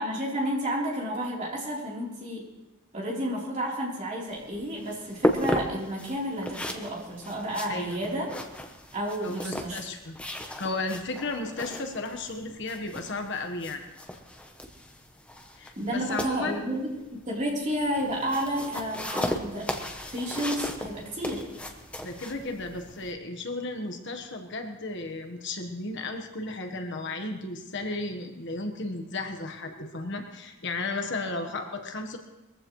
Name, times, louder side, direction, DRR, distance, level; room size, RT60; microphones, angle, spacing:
voice 1, 0.0-2.5 2.9-8.3 8.9-9.8 15.8-19.7 20.1-21.5, equal, 35° right, -4 dB, 3.7 m, -31 dB
sound 1, 4.3-23.1, equal, 5° left, 0.9 m, -35 dB
voice 2, 9.2-10.2 10.6-13.8 15.6-16.6 22.0-32.2, left 2 dB, 55° left, 5 dB, 1.3 m, -34 dB
21.5 x 15.0 x 3.2 m, 1.0 s
head